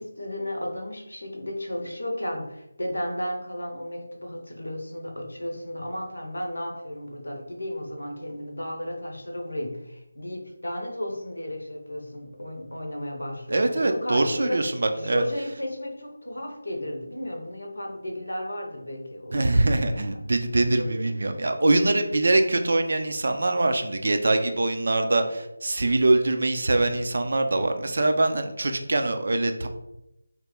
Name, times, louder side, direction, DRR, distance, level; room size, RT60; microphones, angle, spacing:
voice 1, 0.0-14.6 14.9-20.3 20.6-21.1, left 1 dB, 75° left, 2 dB, 0.7 m, -34 dB
voice 2, 13.5-15.2 19.3-29.7, right 2 dB, 50° right, 6 dB, 0.4 m, -23 dB
3.0 x 2.1 x 3.6 m, 0.88 s
figure-of-eight pair, 160°, 0 cm